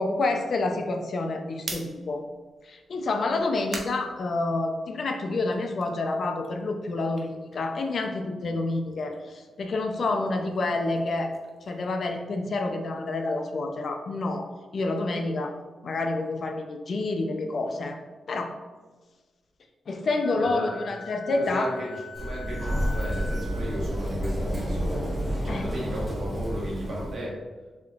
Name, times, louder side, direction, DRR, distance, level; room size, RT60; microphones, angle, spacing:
voice 1, 0.0-2.2 2.6-11.3 11.7-15.5 15.8-18.0 18.3-18.5 19.9-21.7 25.5-25.6, left 2 dB, 55° left, 5 dB, 0.4 m, -28 dB
sound 1, 1.5-5.0 5.4-8.3 8.6-12.7, right 3 dB, 45° right, 0.5 m, -45 dB
Wind instrument woodwind instrument, 20.2-23.7, left 4 dB, 85° left, 1.1 m, -42 dB
voice 2, 20.3-20.8 21.2-25.1 25.4-27.3, right 1 dB, 65° right, -4 dB, 1.2 m, -34 dB
Sliding door, 22.1-27.2, equal, 10° right, 1.1 m, -30 dB
4.2 x 2.8 x 2.3 m, 1.3 s
cardioid pair, 100°, 0 cm